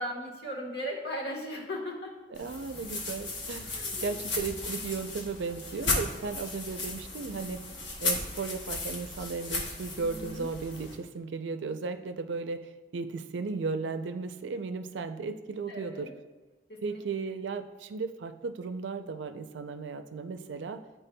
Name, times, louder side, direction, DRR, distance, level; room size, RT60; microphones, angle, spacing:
voice 1, 0.0-2.1 3.6-4.2 9.9-10.4 15.7-16.1 16.7-17.0, equal, 65° left, -1 dB, 1.3 m, -37 dB
sound 1, 2.3-11.0, left 3 dB, 90° left, 1.2 m, -35 dB
voice 2, 2.3-3.7 4.0-7.6 8.0-16.1 16.8-20.8, right 4 dB, 90° right, 9 dB, 0.4 m, -35 dB
10.5 x 4.4 x 2.2 m, 1.2 s
head